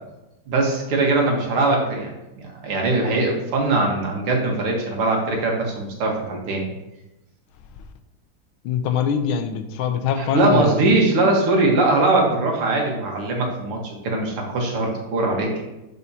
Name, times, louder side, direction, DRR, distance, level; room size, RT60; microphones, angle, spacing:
voice 1, 0.5-6.7 10.2-13.8 14.0-15.5, right 2 dB, 80° right, 0 dB, 2.4 m, -21 dB
voice 2, 8.6-10.9, left 6 dB, 75° left, 7 dB, 1.4 m, -23 dB
11.5 x 5.5 x 2.8 m, 0.96 s
omnidirectional pair, 2.4 m